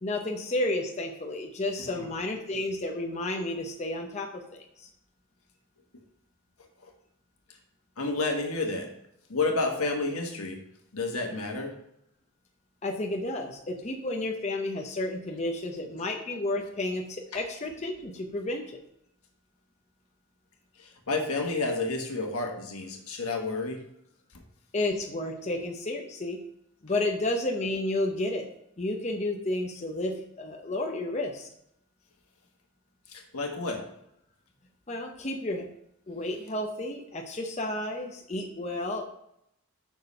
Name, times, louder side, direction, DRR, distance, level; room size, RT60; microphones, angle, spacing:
voice 1, 0.0-4.9 12.8-18.7 24.7-26.4 26.8-28.5 28.8-31.5 34.9-35.7 36.1-39.0, left 1 dB, 30° left, 2 dB, 0.7 m, -31 dB
voice 2, 8.0-8.9 9.3-10.6 10.9-11.7 20.8-23.8 33.1-33.8, left 3 dB, 85° left, 2 dB, 1.5 m, -30 dB
6.2 x 5.2 x 5.5 m, 0.77 s
head